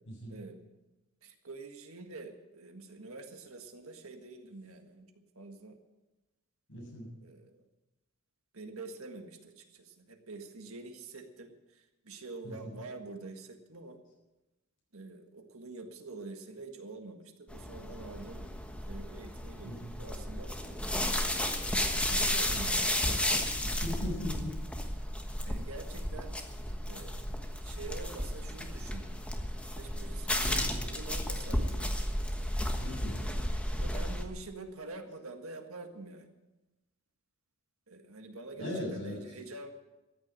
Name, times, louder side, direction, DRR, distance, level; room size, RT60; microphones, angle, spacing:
voice 1, 0.3-0.6 1.2-5.1 5.4-5.8 7.2-7.6 8.5-14.0 14.9-18.5 18.9-20.5 21.8-23.5 25.5-26.3 26.8-27.3 27.6-29.2 29.7-31.9 33.0-33.4 33.8-36.3 37.9-39.7, right 3 dB, 65° right, 5 dB, 1.7 m, -46 dB
voice 2, 6.7-7.1 12.4-12.7 19.6-19.9 23.8-24.5 30.4-30.8 32.8-33.2 38.6-39.2, left 1 dB, 60° left, -1 dB, 7.1 m, -38 dB
sound 1, 17.5-34.2, left 1 dB, 5° left, 1.3 m, -33 dB
14.0 x 10.0 x 8.9 m, 1.1 s
head